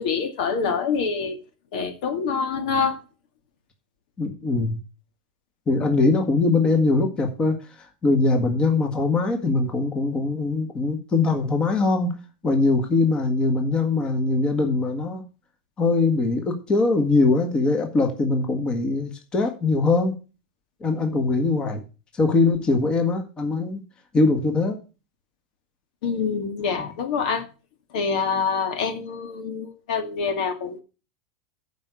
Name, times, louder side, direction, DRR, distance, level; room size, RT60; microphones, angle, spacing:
voice 1, 0.0-1.4 1.7-3.0 26.0-27.5 27.9-30.8, left 5 dB, 65° left, 2.1 m, -26 dB
voice 2, 4.2-4.8 5.7-12.2 12.4-15.2 15.8-20.2 20.8-21.8 22.1-23.8 24.1-24.8 26.8-26.9, left 3 dB, 20° left, 1.7 m, -22 dB
11.5 x 5.2 x 6.8 m
supercardioid pair, 145°, 5 cm